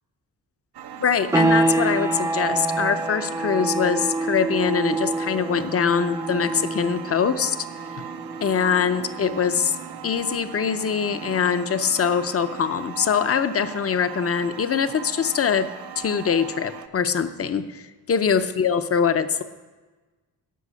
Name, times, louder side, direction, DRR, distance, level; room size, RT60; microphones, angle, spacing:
sound 1, 0.7-16.9, right 9 dB, 75° right, 0.7 m, -39 dB
voice 1, 1.0-7.6 8.0-8.1 8.4-9.8 10.0-15.7 16.0-17.8 18.1-19.4, left 7 dB, 35° left, 10 dB, 0.6 m, -23 dB
sound 2, 1.3-11.8, right 2 dB, 10° right, 0.4 m, -27 dB
13.5 x 6.0 x 8.2 m, 1.3 s
wide cardioid pair, 150°, 40 cm